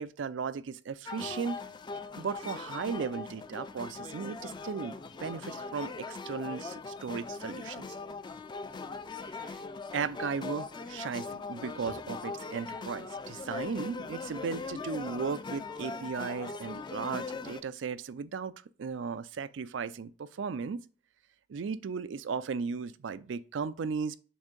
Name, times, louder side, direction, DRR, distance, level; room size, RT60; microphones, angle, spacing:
voice 1, 0.0-1.6 2.2-7.9 9.2-9.6 9.9-18.5 18.8-20.9 21.5-24.2, right 5 dB, 90° right, 0.4 m, -36 dB
sound 1, 1.1-17.6, left 4 dB, 25° left, 0.4 m, -40 dB
7.0 x 2.7 x 5.1 m
head